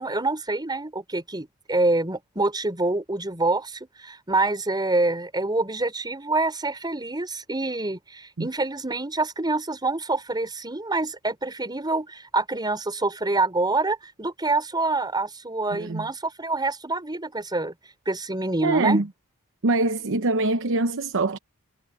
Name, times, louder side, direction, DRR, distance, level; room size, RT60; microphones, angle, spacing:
voice 1, 0.0-17.7 18.0-19.0, right 2 dB, 20° right, 5.0 m, -26 dB
voice 2, 15.7-16.1 18.6-19.1 19.6-21.4, right 2 dB, 60° right, 0.9 m, -23 dB
head